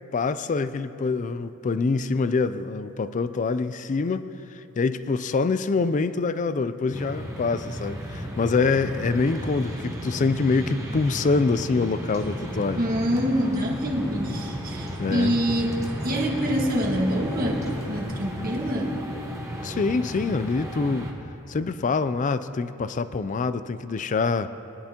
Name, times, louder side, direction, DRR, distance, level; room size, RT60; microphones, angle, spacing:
voice 1, 0.1-12.8 15.0-15.4 19.6-21.1 21.5-24.5, left 4 dB, 35° left, 13 dB, 0.4 m, -25 dB
sound 1, 6.9-21.1, equal, 15° right, 1.2 m, -34 dB
sound 2, 11.7-18.8, equal, 15° left, 0.9 m, -38 dB
voice 2, 12.8-19.0, equal, 45° right, -1 dB, 1.8 m, -26 dB
22.0 x 11.0 x 2.9 m, 2.9 s
head